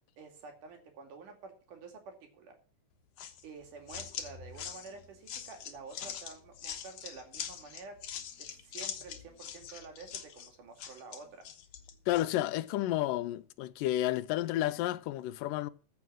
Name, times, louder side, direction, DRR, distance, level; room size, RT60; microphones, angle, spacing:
voice 1, 0.2-2.6 3.4-8.0 8.4-11.5, right 4 dB, 70° right, 3.9 m, -49 dB
sound 1, 3.2-12.3, left 9 dB, 60° left, 2.2 m, -43 dB
voice 2, 12.1-15.7, left 14 dB, 85° left, 2.3 m, -31 dB
14.5 x 6.8 x 6.2 m
omnidirectional pair, 3.8 m